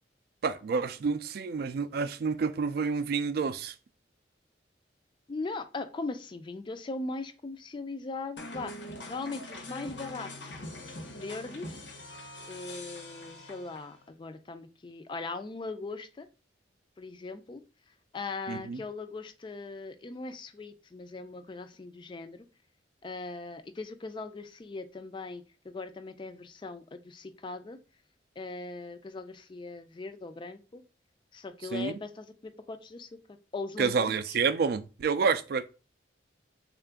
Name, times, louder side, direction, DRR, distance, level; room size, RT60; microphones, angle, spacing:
voice 1, 0.4-3.7 18.5-18.8 31.7-32.0 33.8-35.7, right 5 dB, 55° right, 0.3 m, -29 dB
voice 2, 5.3-8.7 9.1-10.6 11.1-11.8 12.5-16.3 17.0-17.6 18.1-22.4 23.0-27.8 28.4-30.8 31.3-33.1 33.5-34.4, left 3 dB, 25° left, 0.3 m, -39 dB
sound 1, 8.4-14.0, left 1 dB, 75° left, 0.8 m, -43 dB
3.7 x 2.5 x 3.4 m
head